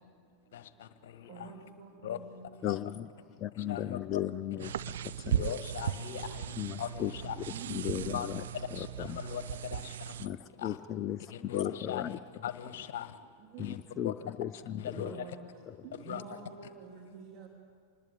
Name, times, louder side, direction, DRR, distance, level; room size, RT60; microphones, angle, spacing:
voice 1, 0.5-1.6 2.0-2.2 2.6-2.8 3.5-4.2 5.3-7.4 7.8-10.1 10.6-10.8 11.3-13.2 13.6-14.1 14.8-15.3 16.0-16.4, left 10 dB, 55° left, 1.5 m, -40 dB
voice 2, 1.3-2.4 3.6-3.8 7.5-8.2 13.5-13.6 14.9-15.4 15.9-17.5, right 6 dB, 35° right, 3.3 m, -47 dB
voice 3, 2.6-3.1 3.4-5.5 6.6-8.4 8.7-9.2 10.2-12.2 13.6-15.2 15.7-15.8, left 11 dB, 30° left, 0.6 m, -36 dB
sound 1, 4.6-10.3, right 10 dB, 60° right, 0.6 m, -37 dB
26.5 x 20.5 x 8.8 m
figure-of-eight pair, 90°, 0 cm